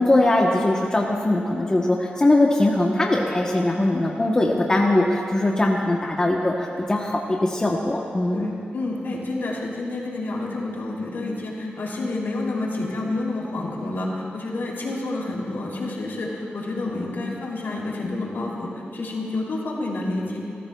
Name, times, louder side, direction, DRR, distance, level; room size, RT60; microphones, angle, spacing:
voice 1, 0.0-8.5, left 1 dB, 20° left, -1 dB, 0.9 m, -21 dB
voice 2, 8.3-20.4, left 2 dB, 80° left, -3 dB, 2.9 m, -29 dB
29.0 x 14.5 x 2.3 m, 2.5 s
wide cardioid pair, 160°, 4 cm